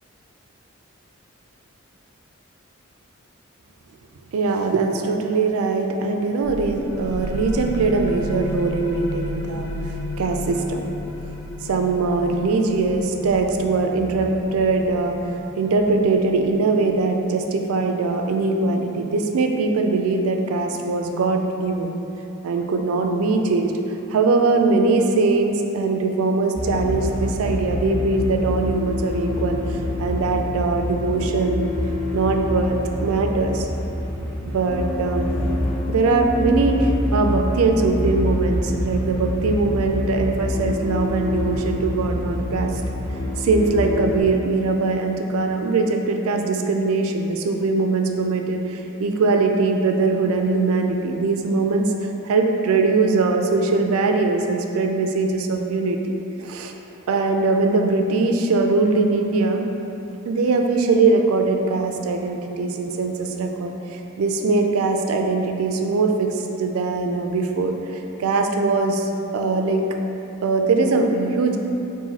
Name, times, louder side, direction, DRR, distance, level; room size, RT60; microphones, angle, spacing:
voice 1, 4.3-10.8 11.6-21.9 22.4-23.7 24.1-31.7 32.1-33.7 34.5-35.3 35.9-42.8 43.4-51.9 52.2-56.0 56.4-56.7 57.1-59.7 60.3-69.8 70.4-71.6, right 3 dB, 85° right, 4 dB, 0.4 m, -21 dB
sound 1, 6.4-17.8, left 1 dB, 55° left, 0.8 m, -33 dB
sound 2, 26.6-44.2, left 1 dB, 5° left, 0.5 m, -26 dB
4.0 x 2.6 x 3.9 m, 3.0 s
head